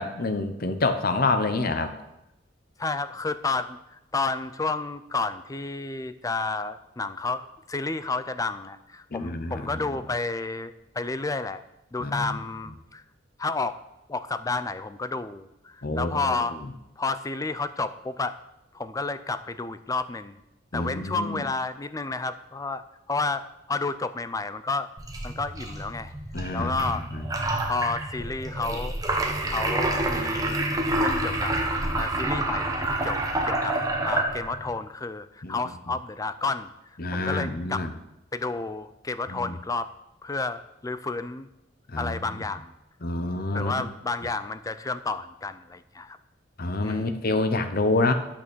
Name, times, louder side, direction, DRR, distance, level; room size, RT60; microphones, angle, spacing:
voice 1, 0.0-1.9 9.1-9.7 12.0-12.3 15.8-16.4 20.7-21.4 26.3-27.3 35.4-35.6 37.0-37.9 39.3-39.5 41.9-42.4 43.0-43.9 46.6-48.1, left 2 dB, 50° left, 9 dB, 0.9 m, -27 dB
voice 2, 2.8-11.6 11.9-13.0 13.4-13.8 14.1-16.6 17.0-18.4 18.7-20.4 20.7-24.9 25.2-26.1 26.5-27.2 27.7-29.0 29.4-30.6 31.0-31.5 32.0-32.7 33.0-36.7 37.1-37.9 38.3-39.9 40.2-41.5 42.0-42.7 43.5-46.2 46.8-47.2, left 3 dB, 20° left, 12 dB, 0.4 m, -31 dB
sound 1, 25.0-34.7, right 1 dB, 20° right, 1.1 m, -28 dB
11.0 x 5.9 x 6.2 m, 0.91 s
head